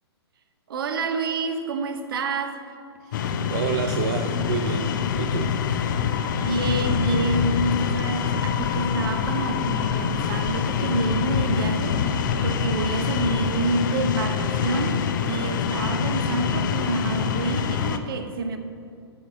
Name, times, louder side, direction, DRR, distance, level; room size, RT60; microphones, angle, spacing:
voice 1, 0.7-2.6 6.4-18.6, right 2 dB, 55° right, 8 dB, 0.9 m, -28 dB
voice 2, 3.0-5.6, right 7 dB, 40° right, 5 dB, 0.5 m, -30 dB
sound 1, 3.1-18.0, left 7 dB, 45° left, 0.6 m, -25 dB
sound 2, 5.8-13.3, left 7 dB, 30° left, 1.3 m, -38 dB
12.0 x 4.2 x 7.5 m, 2.4 s
figure-of-eight pair, 115°, 14 cm